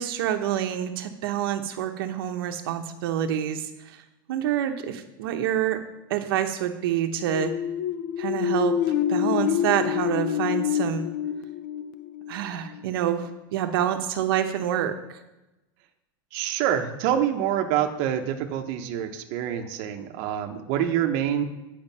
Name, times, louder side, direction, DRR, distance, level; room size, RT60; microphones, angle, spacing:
voice 1, 0.0-3.6 4.3-5.8 6.1-7.5 8.2-8.7 9.1-11.1 12.3-14.9, right 10 dB, 80° right, 6 dB, 0.8 m, -27 dB
sound 1, 7.2-12.8, left 10 dB, 60° left, 0.6 m, -27 dB
voice 2, 16.3-21.4, right 10 dB, 50° right, 4 dB, 0.8 m, -26 dB
9.0 x 5.0 x 5.4 m, 0.99 s
supercardioid pair, 160°, 12 cm